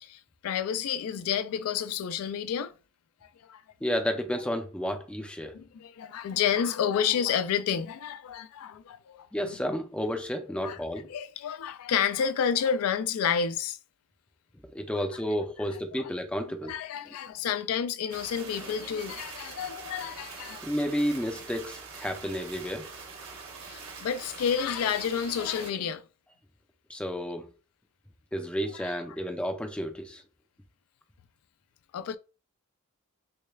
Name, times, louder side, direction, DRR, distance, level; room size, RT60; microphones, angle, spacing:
voice 1, 0.0-2.7 3.5-3.6 5.5-9.3 10.6-10.8 11.1-13.8 14.9-15.0 16.0-16.1 16.6-20.6 23.7-26.0 28.7-28.9 31.9-32.2, left 8 dB, 80° left, 0.3 m, -30 dB
voice 2, 3.8-5.5 9.3-11.1 14.7-16.7 17.1-17.2 20.6-22.9 26.9-27.5 28.3-30.2, equal, 5° left, 0.4 m, -31 dB
sound 1, 18.1-25.7, right 4 dB, 75° right, 1.1 m, -44 dB
6.3 x 2.2 x 2.2 m
head